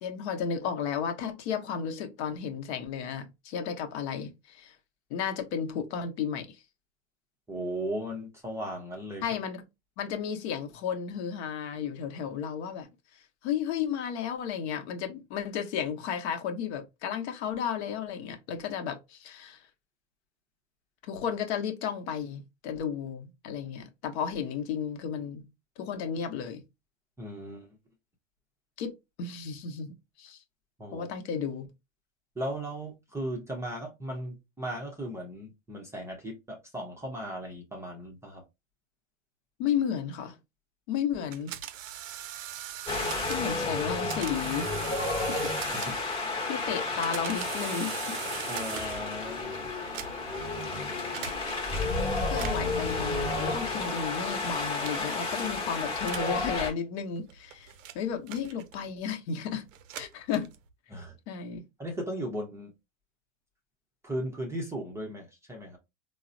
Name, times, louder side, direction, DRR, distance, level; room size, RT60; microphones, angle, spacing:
voice 1, 0.0-4.8 5.1-6.6 9.2-9.6 10.0-19.7 21.1-25.5 25.8-26.6 28.8-28.9 29.2-30.4 30.9-31.7 39.6-40.4 40.9-41.5 43.3-45.4 46.5-48.2 52.3-59.7 59.9-60.5 61.3-61.6, left 7 dB, 60° left, 0.8 m, -33 dB
voice 2, 7.5-9.4 27.2-27.7 30.8-31.1 32.4-38.4 45.7-46.0 48.5-49.7 60.9-61.2 61.8-62.7 64.0-65.8, right 1 dB, 5° right, 0.5 m, -37 dB
sound 1, 41.3-43.6 44.1-46.2 46.8-49.1 49.8-50.4 51.1-51.4 52.2-52.8 53.7-54.0 54.8-55.2 56.0-56.4 57.2-58.9 59.7-60.7, right 11 dB, 80° right, 0.6 m, -41 dB
Wind, 42.9-56.7, left 3 dB, 15° left, 0.9 m, -31 dB
3.8 x 2.0 x 2.5 m
hypercardioid pair, 125°, 38 cm